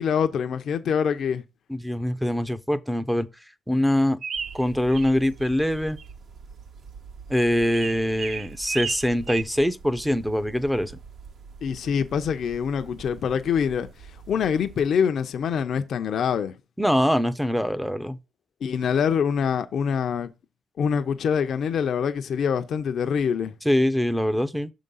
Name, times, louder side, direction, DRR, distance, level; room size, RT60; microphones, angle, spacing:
voice 1, 0.0-1.4 11.6-13.9 14.3-16.5 18.6-20.3 20.8-23.5, left 7 dB, 60° left, 0.7 m, -25 dB
voice 2, 1.7-3.3 3.7-4.2 4.5-6.0 7.3-10.9 16.8-18.2 23.6-24.7, equal, ahead, 0.6 m, -23 dB
sound 1, 4.2-5.1 5.4-6.0 7.7-9.4, right 6 dB, 50° right, 0.4 m, -33 dB
sound 2, 4.3-14.9, right 5 dB, 70° right, 1.9 m, -45 dB
6.4 x 3.7 x 5.4 m
cardioid pair, 90°, 0 cm